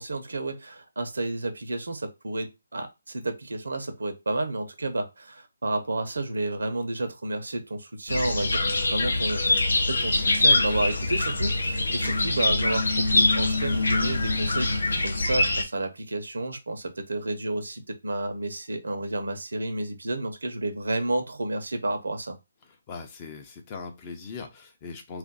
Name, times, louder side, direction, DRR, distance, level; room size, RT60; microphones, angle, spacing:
voice 1, 0.0-22.4, right 2 dB, 85° right, 0.7 m, -31 dB
sound 1, 8.1-15.6, left 2 dB, 75° left, 0.7 m, -24 dB
voice 2, 22.6-25.2, left 5 dB, 25° left, 0.6 m, -40 dB
2.5 x 2.2 x 3.8 m
hypercardioid pair, 160°, 0 cm